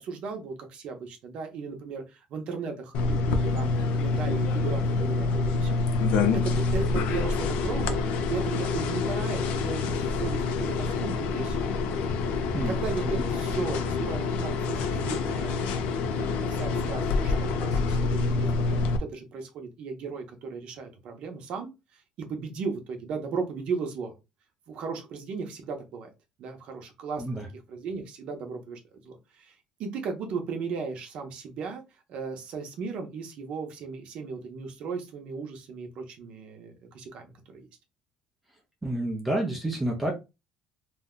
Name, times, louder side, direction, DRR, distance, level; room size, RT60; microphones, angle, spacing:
voice 1, 0.0-11.7 12.7-21.7 22.2-24.1 24.7-26.1 26.4-27.2 27.7-29.5 29.8-31.8 32.1-37.7, right 5 dB, 45° right, 4 dB, 0.7 m, -36 dB
sound 1, 2.9-19.0, left 4 dB, 60° left, 0.5 m, -27 dB
voice 2, 38.8-40.1, right 1 dB, 5° right, 0 dB, 0.5 m, -29 dB
2.6 x 2.2 x 3.7 m, 0.25 s
cardioid pair, 180°, 2 cm